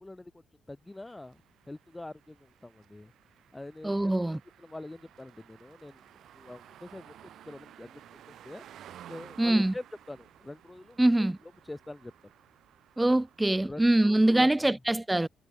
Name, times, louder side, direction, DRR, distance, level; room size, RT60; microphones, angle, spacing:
voice 1, 0.0-1.4 1.7-3.1 3.5-4.1 4.6-6.0 6.3-7.2 7.4-8.6 9.1-12.1 13.6-14.8, left 2 dB, 15° left, 1.8 m, -45 dB
sound 1, 0.9-13.9, right 11 dB, 70° right, 2.7 m, -55 dB
voice 2, 3.8-4.4 9.4-9.7 11.0-11.4 13.0-15.3, right 1 dB, 10° right, 0.3 m, -24 dB
cardioid pair, 90°, 0 cm